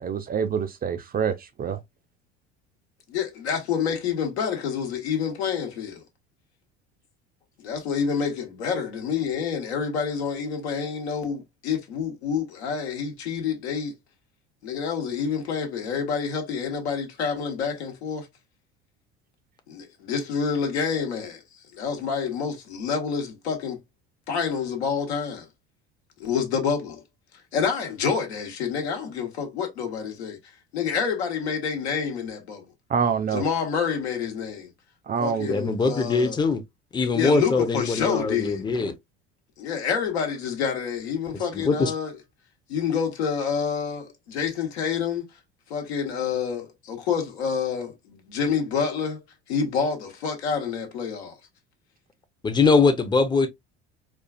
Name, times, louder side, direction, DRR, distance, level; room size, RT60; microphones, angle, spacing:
voice 1, 0.0-1.8 32.9-33.5 35.1-35.5, right 7 dB, 30° right, 0.5 m, -26 dB
voice 2, 3.1-6.0 7.6-13.9 14.6-18.3 19.7-21.4 21.7-23.8 24.3-25.5 26.2-27.0 27.5-30.4 30.7-32.7 33.3-34.7 35.2-36.4 37.1-38.6 39.6-42.1 42.7-45.3 45.7-49.2 49.5-51.3, left 6 dB, 75° left, 1.1 m, -28 dB
voice 3, 35.5-36.6 36.9-38.9 41.3-41.9 52.4-53.5, left 4 dB, 15° left, 0.6 m, -22 dB
4.3 x 2.4 x 2.3 m
hypercardioid pair, 65°, 33 cm